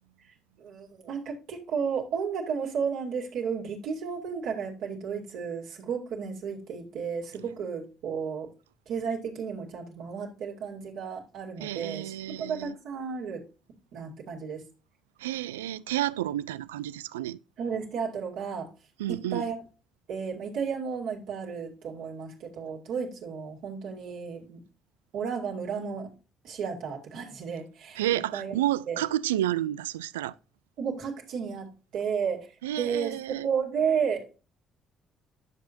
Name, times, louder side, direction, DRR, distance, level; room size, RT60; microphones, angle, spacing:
voice 1, 0.3-8.5 8.9-13.4 13.9-14.6 17.6-18.7 19.1-19.6 20.1-24.6 25.1-26.1 26.4-28.6 28.9-29.0 30.8-34.2, right 6 dB, 65° right, 2.7 m, -33 dB
voice 2, 11.6-12.7 15.2-17.4 19.0-19.4 28.0-30.3 32.6-33.5, right 13 dB, 85° right, 0.3 m, -30 dB
10.5 x 6.7 x 2.7 m
hypercardioid pair, 50°, 0 cm